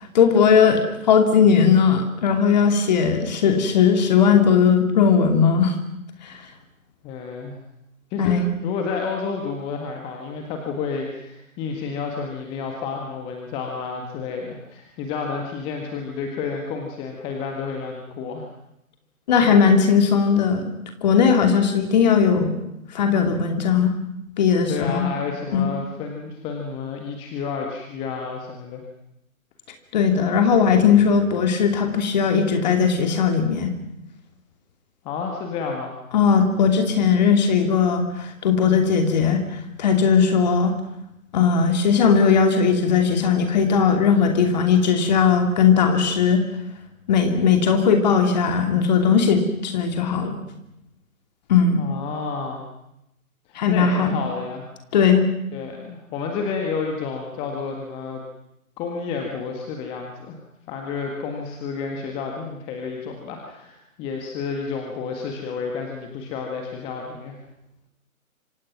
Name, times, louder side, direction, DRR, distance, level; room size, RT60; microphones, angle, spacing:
voice 1, 0.1-5.8 6.2-6.3 8.2-8.5 19.3-20.7 21.0-22.6 22.9-23.9 24.4-25.1 25.5-25.7 29.9-33.7 36.1-39.4 39.8-40.8 41.3-46.4 47.1-50.4 51.5-51.8 53.6-54.2 54.9-55.3, left 6 dB, 30° left, 5 dB, 2.6 m, -18 dB
voice 2, 7.0-7.6 8.1-8.4 8.6-18.5 24.7-28.8 35.0-36.0 51.8-52.7 53.5-54.7 55.5-58.2 58.8-60.4 60.7-67.4, left 5 dB, 10° left, 2 dB, 1.8 m, -30 dB
28.5 x 25.5 x 6.0 m, 0.85 s
figure-of-eight pair, 140°, 43 cm